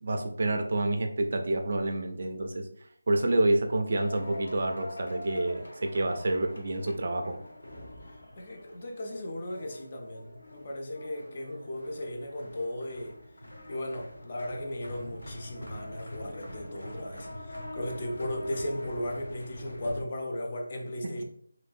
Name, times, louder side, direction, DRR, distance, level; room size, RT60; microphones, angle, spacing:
voice 1, 0.0-2.6 3.1-7.4, right 2 dB, 45° right, 0.4 m, -28 dB
sound 1, 3.9-20.0, left 1 dB, 85° left, 1.0 m, -44 dB
voice 2, 8.4-13.2 13.7-21.2, left 1 dB, 30° left, 0.5 m, -36 dB
3.0 x 2.6 x 2.5 m
figure-of-eight pair, 170°, 0 cm